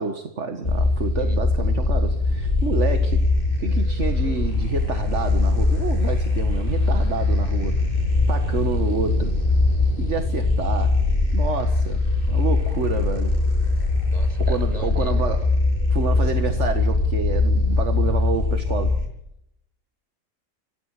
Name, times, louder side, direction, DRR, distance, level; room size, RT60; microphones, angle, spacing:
voice 1, 0.0-3.3 3.6-7.8 8.3-9.4 10.0-11.0 11.3-13.4 14.4-15.5 15.9-19.0, right 5 dB, 55° right, 2.1 m, -29 dB
sound 1, 0.6-19.1, left 3 dB, 40° left, 7.7 m, -21 dB
voice 2, 14.1-15.1, right 2 dB, 25° right, 6.1 m, -37 dB
27.5 x 17.5 x 8.5 m
omnidirectional pair, 1.5 m